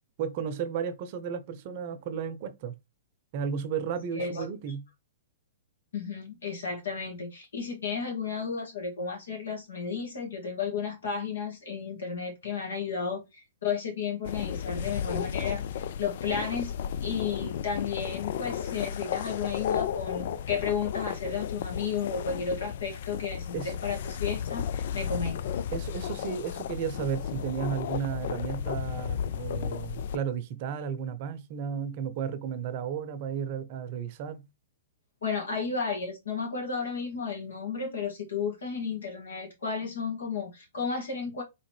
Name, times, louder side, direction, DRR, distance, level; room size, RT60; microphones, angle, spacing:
voice 1, 0.2-2.7 3.3-4.8 23.5-23.7 25.7-34.4, right 7 dB, 45° right, 0.7 m, -33 dB
voice 2, 4.1-4.5 5.9-25.5 35.2-41.4, left 5 dB, 75° left, 2.0 m, -33 dB
sound 1, 14.2-30.2, left 8 dB, 55° left, 0.4 m, -34 dB
4.1 x 3.6 x 3.2 m
hypercardioid pair, 115°, 0 cm